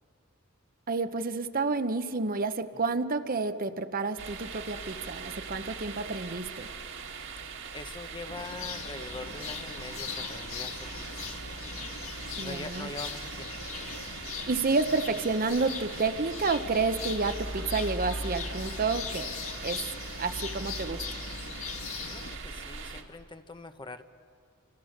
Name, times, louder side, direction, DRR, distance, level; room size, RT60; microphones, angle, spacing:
voice 1, 0.9-6.7 12.4-12.9 14.3-19.3 19.6-19.8 20.2-21.2, right 4 dB, 45° right, 10 dB, 0.9 m, -30 dB
sound 1, 4.2-23.0, right 3 dB, 65° right, 2.1 m, -40 dB
voice 2, 7.7-11.3 12.4-13.7 22.0-24.0, left 3 dB, 25° left, 9 dB, 0.9 m, -43 dB
sound 2, 8.3-22.4, left 6 dB, 80° left, 1.9 m, -40 dB
29.0 x 24.5 x 6.6 m, 2.4 s
head